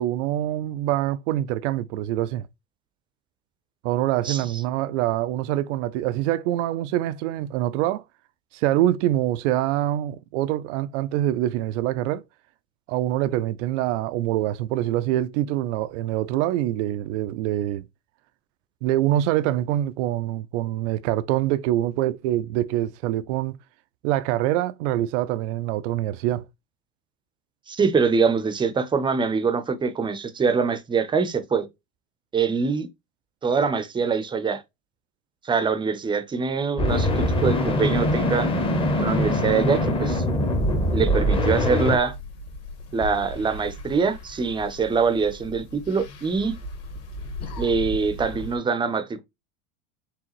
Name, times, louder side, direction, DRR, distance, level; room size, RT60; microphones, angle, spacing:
voice 1, 0.0-2.5 3.8-8.0 8.5-12.2 12.9-17.8 18.8-23.6 24.0-26.4, right 13 dB, 85° right, 0.5 m, -25 dB
voice 2, 27.7-31.7 32.3-32.9 33.4-34.6 35.4-38.5 39.0-40.2 40.9-42.1 42.9-46.5 47.6-49.2, right 5 dB, 15° right, 0.6 m, -24 dB
sound 1, 36.8-42.0, left 1 dB, 15° left, 0.8 m, -22 dB
sound 2, 36.9-48.6, left 1 dB, 45° left, 1.6 m, -39 dB
4.9 x 3.4 x 3.0 m
supercardioid pair, 140°, 34 cm